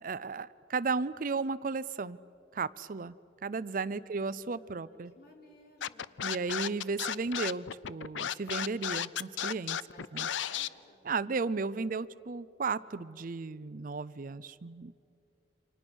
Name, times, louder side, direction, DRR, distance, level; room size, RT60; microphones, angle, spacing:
voice 1, 0.0-2.2 2.5-3.1 3.4-5.1 6.2-9.8 10.1-10.3 11.1-15.0, right 4 dB, 45° right, 16 dB, 0.5 m, -34 dB
voice 2, 3.9-6.2 9.8-11.0, left 1 dB, 55° left, 0 dB, 4.0 m, -58 dB
Scratching (performance technique), 5.8-10.7, left 9 dB, 85° left, 0.6 m, -34 dB
29.5 x 26.0 x 6.2 m, 2.4 s
head